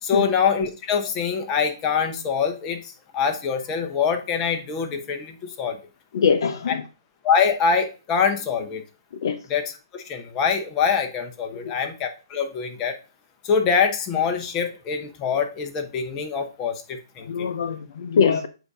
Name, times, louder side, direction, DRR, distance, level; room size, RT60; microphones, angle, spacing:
voice 1, 0.0-2.8 3.1-5.8 7.2-8.8 9.5-13.0 13.4-17.5, left 6 dB, 20° left, 5 dB, 0.9 m, -24 dB
voice 2, 6.1-6.8 9.2-9.4 11.6-11.7 17.2-18.5, left 6 dB, 60° left, 10 dB, 0.6 m, -22 dB
7.7 x 2.7 x 4.9 m, 0.33 s
hypercardioid pair, 150°, 2 cm